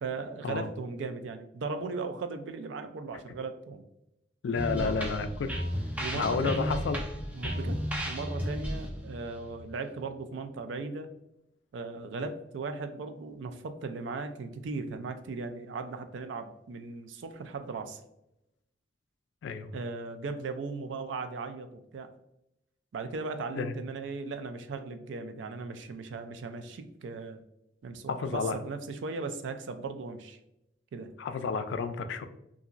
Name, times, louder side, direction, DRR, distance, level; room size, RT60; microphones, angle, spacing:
voice 1, 0.0-3.8 4.7-5.1 6.0-6.8 7.4-11.1 11.7-18.0 19.7-22.1 22.9-27.4 27.8-30.4 30.9-31.1, right 4 dB, 80° right, 8 dB, 0.4 m, -37 dB
voice 2, 4.4-5.5 6.1-7.1 19.4-19.7 23.6-23.7 28.1-28.5 31.2-32.2, left 5 dB, 75° left, 9 dB, 0.3 m, -31 dB
sound 1, 4.5-10.2, equal, 10° right, 0.3 m, -34 dB
2.9 x 2.5 x 2.4 m, 0.83 s
head